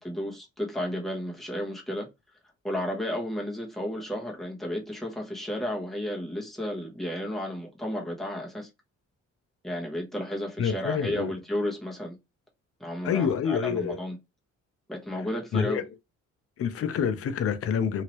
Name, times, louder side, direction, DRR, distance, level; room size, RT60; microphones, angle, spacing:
voice 1, 0.0-2.1 2.6-8.7 9.6-12.2 12.8-14.2 14.9-15.8, equal, ahead, 1.2 m, -32 dB
voice 2, 10.6-11.3 13.0-14.0 15.5-15.8 16.6-18.0, left 7 dB, 50° left, 0.6 m, -27 dB
2.8 x 2.8 x 3.0 m
cardioid pair, 90°, 30 cm